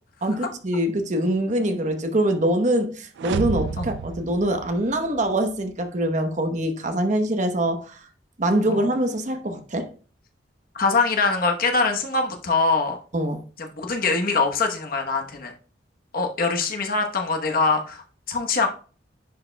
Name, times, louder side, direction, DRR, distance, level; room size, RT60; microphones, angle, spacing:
voice 1, 0.2-8.0 8.4-9.9 13.1-13.4, right 1 dB, 45° right, 0.9 m, -24 dB
sound 1, 3.2-5.3, right 6 dB, 80° right, 0.3 m, -31 dB
voice 2, 10.7-13.0 13.6-15.5 16.1-18.0 18.3-18.7, left 4 dB, 55° left, 1.0 m, -23 dB
10.0 x 4.8 x 2.2 m
head